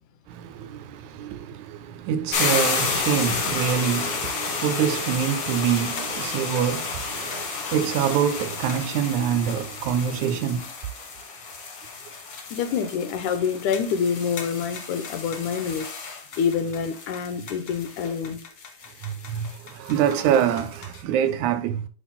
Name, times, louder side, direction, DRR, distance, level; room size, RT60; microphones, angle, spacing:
voice 1, 0.3-10.7 19.0-21.9, right 9 dB, 80° right, 1.8 m, -25 dB
sound 1, 2.3-21.0, left 4 dB, 55° left, 1.3 m, -31 dB
voice 2, 12.5-15.9 16.4-18.4, left 7 dB, 80° left, 2.2 m, -26 dB
10.0 x 5.7 x 2.2 m
omnidirectional pair, 3.6 m